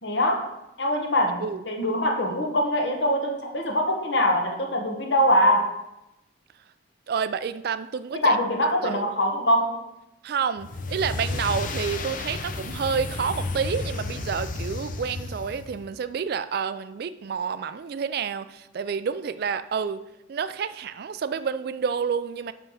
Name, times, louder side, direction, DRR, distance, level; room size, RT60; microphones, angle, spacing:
voice 1, 0.0-0.5 0.8-5.7 8.1-9.8, equal, 65° left, 3 dB, 1.2 m, -23 dB
voice 2, 7.1-8.4 8.8-9.0 10.2-20.0 20.3-22.5, right 6 dB, 50° right, 13 dB, 0.3 m, -29 dB
sound 1, 10.6-15.9, left 3 dB, 40° left, 0.5 m, -32 dB
6.2 x 5.5 x 5.5 m, 0.91 s
head